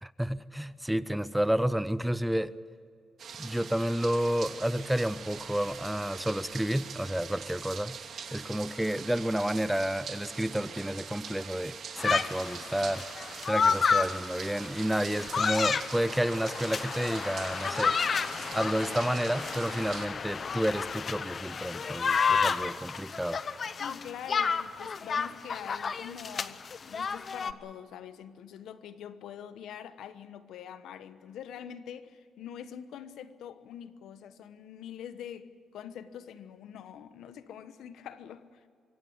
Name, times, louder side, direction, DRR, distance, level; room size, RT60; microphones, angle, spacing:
voice 1, 0.0-2.5 3.4-8.0 8.3-13.1 13.5-17.9 18.5-23.4, right 1 dB, 5° right, 0.6 m, -30 dB
sound 1, 3.2-20.1, right 6 dB, 60° right, 2.6 m, -43 dB
sound 2, 12.0-27.5, left 5 dB, 40° left, 0.8 m, -31 dB
voice 2, 23.8-26.6 26.9-38.6, left 9 dB, 85° left, 1.2 m, -44 dB
24.5 x 16.5 x 8.0 m
cardioid pair, 120°, 0 cm